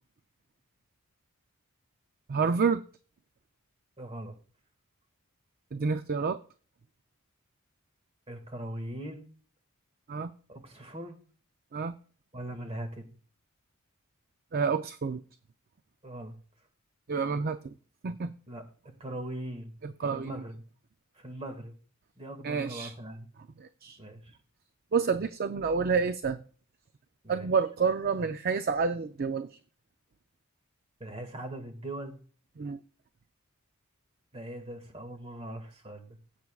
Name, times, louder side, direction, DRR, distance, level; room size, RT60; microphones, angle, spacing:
voice 1, 2.3-2.8 5.7-6.4 10.1-10.3 11.7-11.9 14.5-15.2 17.1-17.7 18.0-18.3 19.8-20.4 22.4-22.9 23.6-24.0 24.9-26.4 27.3-29.6 32.6-32.8, right 5 dB, 40° right, 10 dB, 0.4 m, -29 dB
voice 2, 4.0-4.4 8.3-9.3 10.5-11.2 12.3-13.1 16.0-16.3 18.5-18.6 19.0-19.7 20.0-20.6 21.2-21.7 22.2-23.3 24.0-24.4 27.2-27.5 31.0-32.2 34.3-36.2, right 1 dB, 25° right, 6 dB, 1.9 m, -40 dB
16.5 x 8.2 x 2.4 m, 0.40 s
head